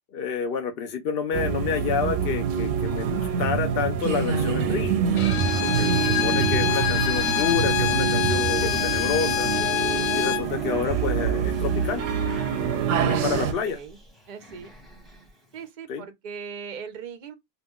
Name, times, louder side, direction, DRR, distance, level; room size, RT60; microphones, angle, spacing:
voice 1, 0.1-5.0 5.6-9.5 10.1-12.0 13.1-13.8 15.9-16.0, left 6 dB, 60° left, 0.7 m, -29 dB
sound 1, 1.3-13.5, right 7 dB, 85° right, 1.0 m, -25 dB
Bowed string instrument, 5.2-10.5, left 12 dB, 80° left, 0.9 m, -26 dB
sound 2, 8.2-15.6, left 2 dB, ahead, 0.8 m, -43 dB
voice 2, 13.6-14.0 14.3-14.7 15.5-17.3, right 6 dB, 50° right, 0.5 m, -39 dB
2.9 x 2.4 x 3.5 m
omnidirectional pair, 1.3 m